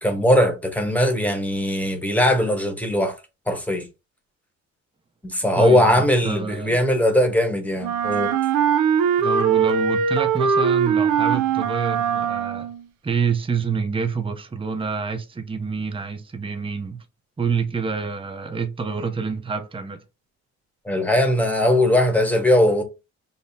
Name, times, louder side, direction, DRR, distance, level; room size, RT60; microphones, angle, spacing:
voice 1, 0.0-3.2 3.5-3.9 5.2-8.3 20.8-22.8, left 1 dB, 5° left, 1.0 m, -20 dB
voice 2, 5.6-6.8 9.2-12.7 13.0-17.0 17.4-20.0, right 5 dB, 20° right, 0.6 m, -27 dB
Wind instrument woodwind instrument, 7.8-12.9, right 7 dB, 80° right, 0.6 m, -21 dB
5.4 x 2.0 x 2.6 m
cardioid pair, 90°, 30 cm